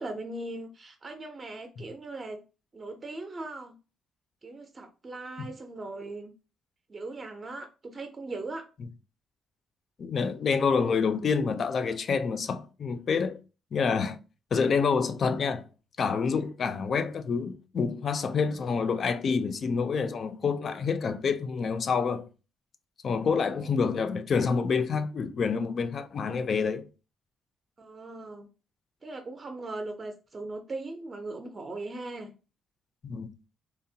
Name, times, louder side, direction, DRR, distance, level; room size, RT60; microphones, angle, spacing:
voice 1, 0.0-2.4 2.7-3.8 4.4-6.3 6.9-8.7 23.2-23.7 27.8-28.5 29.0-32.3, right 2 dB, 35° right, 0.4 m, -39 dB
voice 2, 10.0-13.4 13.7-14.2 14.5-15.7 16.0-22.3 23.0-26.9 33.0-33.3, left 5 dB, 50° left, 0.3 m, -27 dB
2.9 x 2.0 x 2.7 m
cardioid pair, 90°, 0 cm